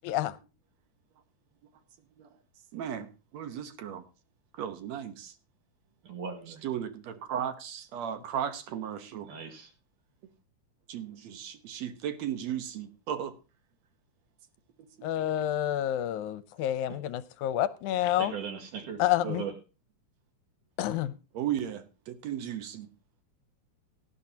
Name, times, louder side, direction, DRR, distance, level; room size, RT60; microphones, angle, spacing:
voice 1, 0.0-0.4 15.0-18.3 19.0-19.4 20.8-21.1, left 12 dB, 80° left, 2.1 m, -29 dB
voice 2, 2.7-3.1 3.3-4.0 4.6-5.3 6.6-9.3 10.9-13.3 15.0-15.3 21.4-22.9, right 9 dB, 65° right, 2.1 m, -35 dB
voice 3, 6.0-6.6 9.2-9.7 16.9-17.0 18.2-19.5, right 6 dB, 80° right, 3.5 m, -38 dB
18.0 x 11.0 x 2.8 m
omnidirectional pair, 3.5 m